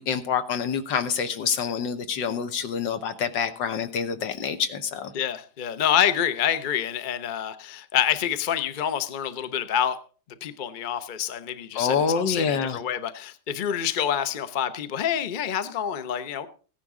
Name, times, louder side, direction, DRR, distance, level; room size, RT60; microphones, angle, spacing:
voice 1, 0.0-5.1 11.8-12.8, left 6 dB, 80° left, 1.8 m, -26 dB
voice 2, 5.1-10.0 10.4-16.5, left 9 dB, 50° left, 0.6 m, -27 dB
15.5 x 10.5 x 3.7 m
omnidirectional pair, 1.9 m